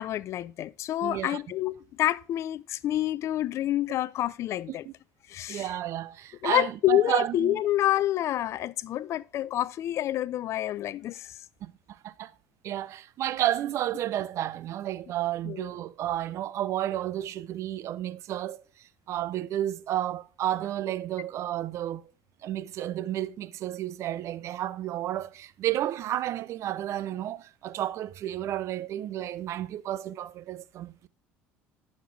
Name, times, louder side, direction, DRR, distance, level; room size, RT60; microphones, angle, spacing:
voice 1, 0.0-4.9 5.3-5.7 6.4-11.4 15.4-15.7, left 13 dB, 55° left, 0.5 m, -28 dB
voice 2, 1.0-1.4 4.7-4.9 5.5-7.6 11.6-12.3 12.6-18.6 19.1-22.1 22.4-31.1, right 12 dB, 55° right, 0.7 m, -31 dB
12.5 x 6.6 x 3.3 m
supercardioid pair, 85°, 6 cm